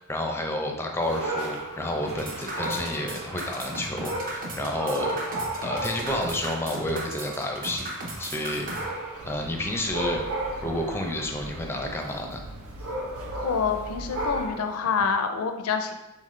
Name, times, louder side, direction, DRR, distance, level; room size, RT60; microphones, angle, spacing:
voice 1, 0.0-5.2 5.6-7.9 8.2-8.7 9.2-10.2 10.6-12.4, left 1 dB, 10° left, 2 dB, 0.5 m, -30 dB
Dog, 1.0-14.8, right 1 dB, 90° right, 1.1 m, -35 dB
sound 1, 2.0-8.8, right 1 dB, 40° right, 0.7 m, -36 dB
sound 2, 9.1-14.5, right 1 dB, 70° right, 0.5 m, -42 dB
voice 2, 13.4-15.9, left 5 dB, 75° left, 7 dB, 0.4 m, -26 dB
3.9 x 3.8 x 3.2 m, 0.99 s
head